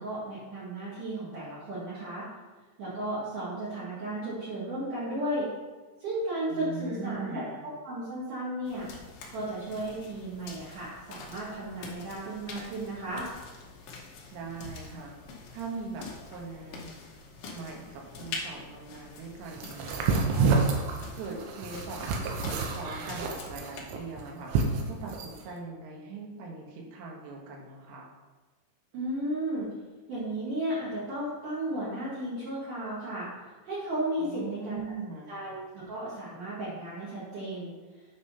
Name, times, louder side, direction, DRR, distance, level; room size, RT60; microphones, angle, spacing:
voice 1, 0.0-2.3 2.8-5.5 6.0-8.9 9.3-13.3 28.9-29.7 30.1-33.3 33.6-34.8 35.3-37.7, right 1 dB, 55° right, -9 dB, 2.7 m, -34 dB
voice 2, 6.5-7.6 14.3-15.1 15.5-16.9 17.5-20.7 21.1-24.5 24.8-28.1 34.2-35.3, right 4 dB, 70° right, -1 dB, 3.2 m, -41 dB
sound 1, 8.6-23.8, left 4 dB, 80° left, 2.0 m, -45 dB
sound 2, 19.6-25.4, right 4 dB, 85° right, 3.4 m, -28 dB
9.5 x 4.2 x 5.5 m, 1.3 s
omnidirectional pair, 5.7 m